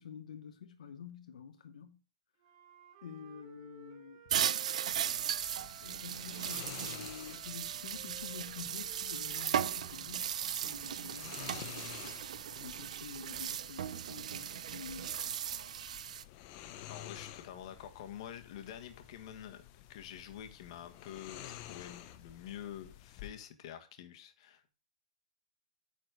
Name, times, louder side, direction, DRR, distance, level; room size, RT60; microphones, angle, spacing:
voice 1, 0.0-2.0 3.0-4.3 5.8-11.9 12.6-15.4, left 7 dB, 80° left, 0.9 m, -49 dB
Wind instrument woodwind instrument, 2.4-6.2 6.5-10.3, right 9 dB, 45° right, 2.8 m, -57 dB
sound 1, 4.3-16.2, right 9 dB, 70° right, 0.6 m, -37 dB
sound 2, 4.9-23.3, left 12 dB, 35° left, 0.8 m, -52 dB
voice 2, 16.9-19.6 19.9-24.7, left 10 dB, 50° left, 1.5 m, -47 dB
9.3 x 4.2 x 6.5 m
hypercardioid pair, 155°, 4 cm